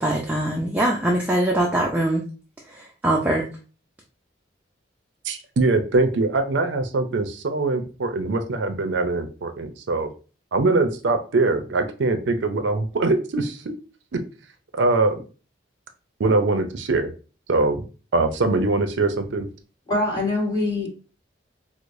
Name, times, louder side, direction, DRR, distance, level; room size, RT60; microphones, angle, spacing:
voice 1, 0.0-2.2 3.0-3.4, right 1 dB, 10° right, -2 dB, 0.4 m, -22 dB
voice 2, 5.3-10.1 10.5-13.7 14.7-15.2 16.2-17.1 17.5-17.8 18.1-19.5, right 3 dB, 75° right, 8 dB, 0.5 m, -22 dB
voice 3, 19.9-20.9, left 2 dB, 20° left, -5 dB, 1.5 m, -23 dB
4.6 x 2.0 x 2.5 m, 0.35 s
head